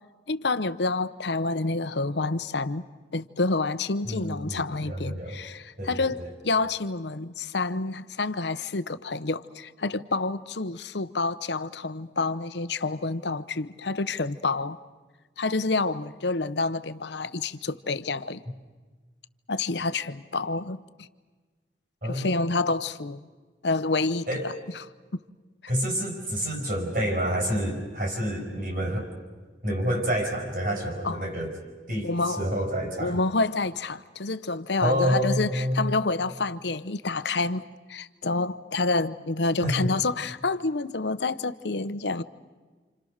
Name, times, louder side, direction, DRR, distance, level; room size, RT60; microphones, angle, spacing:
voice 1, 0.3-2.8 3.1-14.8 15.4-18.4 19.5-21.1 22.0-23.3 23.6-24.8 31.0-31.3 32.0-32.5 33.0-37.6 37.9-42.2, left 3 dB, 75° left, 13 dB, 0.9 m, -28 dB
voice 2, 4.0-5.4 5.8-6.3 22.0-22.4 24.3-24.4 25.7-29.1 29.6-31.5 31.9-33.2 34.8-35.9 39.6-39.9, equal, 50° right, 2 dB, 5.7 m, -28 dB
29.5 x 27.5 x 6.6 m, 1.4 s
head